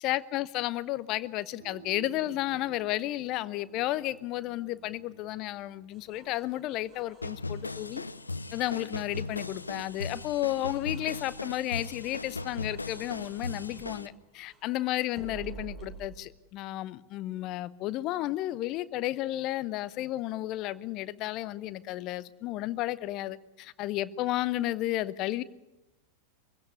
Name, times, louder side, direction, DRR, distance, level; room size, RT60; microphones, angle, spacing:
voice 1, 0.0-8.0 8.5-25.4, left 15 dB, 40° left, 17 dB, 0.8 m, -32 dB
sound 1, 1.6-7.0, right 7 dB, 80° right, 7.2 m, -53 dB
sound 2, 5.9-14.7 15.1-16.1, right 5 dB, 25° right, 5.7 m, -51 dB
sound 3, 7.2-14.1, left 3 dB, 80° left, 0.7 m, -38 dB
24.0 x 16.5 x 9.6 m, 0.97 s
figure-of-eight pair, 90°, 0 cm